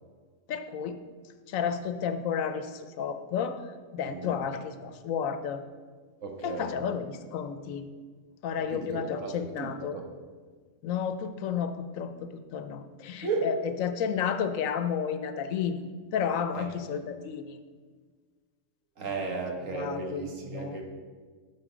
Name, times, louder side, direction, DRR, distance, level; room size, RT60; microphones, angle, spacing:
voice 1, 0.5-1.0 1.5-3.6 3.9-5.6 6.4-7.9 8.4-10.0 10.8-13.5 13.8-17.6 19.7-20.8, left 7 dB, 80° left, 10 dB, 1.0 m, -32 dB
voice 2, 4.0-4.4 6.2-6.8 8.7-10.0 13.2-13.5 16.5-16.7 19.0-20.8, right 3 dB, 70° right, 1 dB, 1.6 m, -34 dB
12.0 x 4.6 x 4.9 m, 1.5 s
omnidirectional pair, 1.4 m